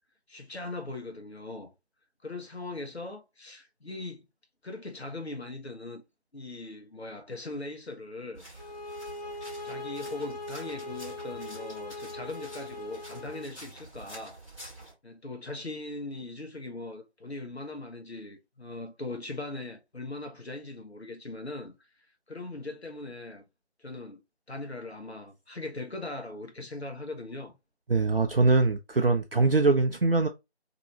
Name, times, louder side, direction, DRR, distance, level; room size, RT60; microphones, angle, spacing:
voice 1, 0.3-1.7 2.2-4.2 4.6-6.0 6.3-8.7 9.6-14.4 15.0-21.7 22.3-23.4 23.8-24.2 24.5-27.5, left 2 dB, 70° left, 1.2 m, -40 dB
sound 1, 8.3-14.9, right 1 dB, 5° left, 1.6 m, -48 dB
sound 2, 8.5-13.5, left 2 dB, 40° left, 0.6 m, -40 dB
voice 2, 27.9-30.3, right 3 dB, 55° right, 0.5 m, -23 dB
3.0 x 2.9 x 2.7 m
figure-of-eight pair, 165°, 33 cm